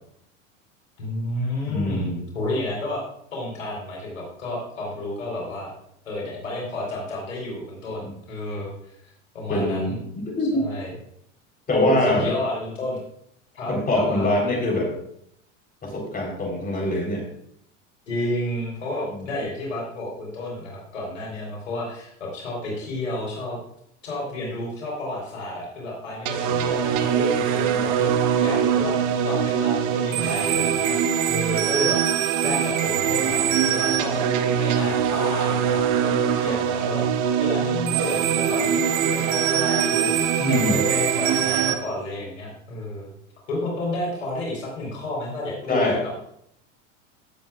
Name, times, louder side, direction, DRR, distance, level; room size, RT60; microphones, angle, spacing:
voice 1, 1.0-3.0 3.3-5.7 6.0-9.0 9.3-10.0 10.4-10.9 12.0-13.0 13.5-14.5 18.1-23.6 24.0-31.0 31.3-32.0 32.4-34.2 34.6-37.0 37.4-43.1 43.5-46.1, left 1 dB, 90° left, -3 dB, 4.3 m, -31 dB
voice 2, 1.7-2.1 9.5-10.6 11.7-12.3 13.7-14.9 15.8-17.2 19.2-19.3 40.4-40.8 45.7-46.0, left 1 dB, 25° left, 0 dB, 4.0 m, -23 dB
sound 1, 26.3-41.7, right 8 dB, 50° right, 1.3 m, -22 dB
16.5 x 7.6 x 2.5 m, 0.71 s
hypercardioid pair, 100°, 37 cm